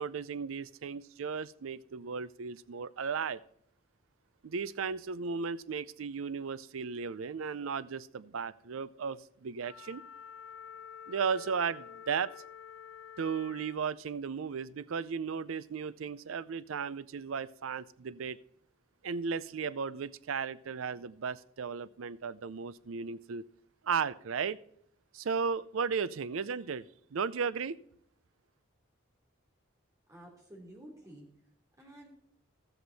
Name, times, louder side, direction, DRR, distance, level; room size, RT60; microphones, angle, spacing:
voice 1, 0.0-3.4 4.4-10.0 11.1-12.3 13.2-18.4 19.0-23.4 23.8-24.6 25.1-26.8 27.1-27.8, right 6 dB, 90° right, 17 dB, 0.5 m, -35 dB
Wind instrument woodwind instrument, 9.6-13.9, left 8 dB, 75° left, 0.4 m, -49 dB
voice 2, 30.1-31.3 31.8-32.1, right 1 dB, 15° right, -1 dB, 3.0 m, -51 dB
13.0 x 7.9 x 4.1 m, 0.68 s
head